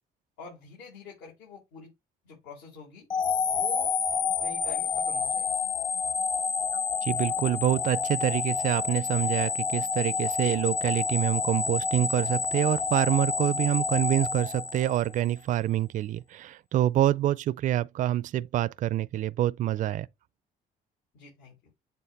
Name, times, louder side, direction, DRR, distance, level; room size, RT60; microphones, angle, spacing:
voice 1, 0.4-1.9 2.2-3.1 3.5-3.9 4.2-5.5 21.1-21.5, left 5 dB, 85° left, 3.7 m, -45 dB
sound 1, 3.1-15.3, left 6 dB, 25° left, 0.4 m, -29 dB
voice 2, 7.0-20.1, right 13 dB, 50° right, 0.4 m, -26 dB
7.8 x 3.9 x 3.4 m
cardioid pair, 110°, 17 cm